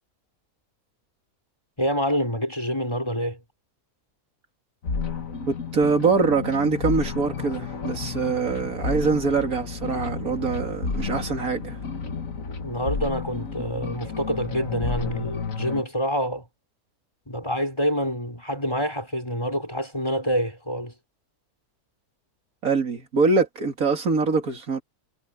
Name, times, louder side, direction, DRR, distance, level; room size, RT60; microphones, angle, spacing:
voice 1, 1.8-3.4 12.6-16.4 17.3-20.9, equal, 15° left, 6.0 m, -27 dB
sound 1, 4.8-15.8, left 5 dB, 60° left, 2.0 m, -31 dB
voice 2, 5.5-11.8 22.6-24.8, right 4 dB, 65° right, 2.9 m, -24 dB
omnidirectional pair, 1.6 m